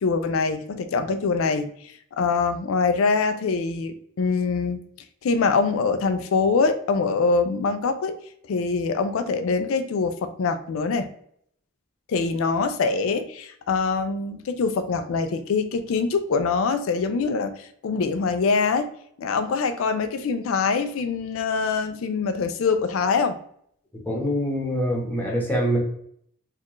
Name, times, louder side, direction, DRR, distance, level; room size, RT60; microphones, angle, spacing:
voice 1, 0.0-4.8 5.2-8.2 8.5-11.1 12.1-18.9 19.2-23.3, left 4 dB, 90° left, 9 dB, 0.4 m, -24 dB
voice 2, 24.0-25.8, equal, 10° left, -2 dB, 1.0 m, -24 dB
4.3 x 2.4 x 3.0 m, 0.67 s
head